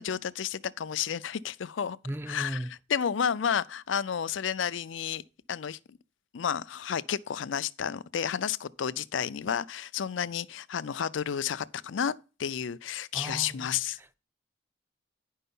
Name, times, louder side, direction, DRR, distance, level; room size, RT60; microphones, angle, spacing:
voice 1, 0.0-2.0 2.3-5.2 5.5-6.0 6.3-12.1 12.4-14.0, left 8 dB, 85° left, 0.5 m, -31 dB
voice 2, 2.0-2.7 13.1-14.2, right 1 dB, 10° right, 0.4 m, -37 dB
10.0 x 5.5 x 5.4 m
head